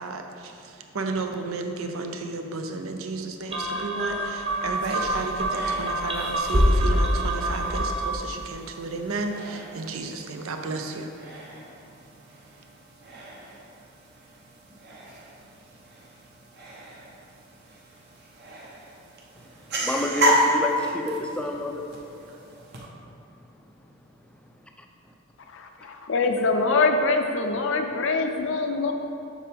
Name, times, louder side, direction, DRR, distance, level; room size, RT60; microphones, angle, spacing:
voice 1, 0.0-11.1 11.9-12.0 12.6-12.7, right 3 dB, 85° right, 5 dB, 0.6 m, -33 dB
sound 1, 3.5-8.3, equal, 25° right, 0.9 m, -25 dB
sound 2, 4.7-22.9, equal, 50° right, 0.9 m, -33 dB
voice 2, 19.8-21.9 24.8-24.9, left 1 dB, 5° left, 2 dB, 0.4 m, -29 dB
voice 3, 25.5-28.9, left 3 dB, 65° left, 5 dB, 0.5 m, -24 dB
7.3 x 5.9 x 3.5 m, 2.6 s
head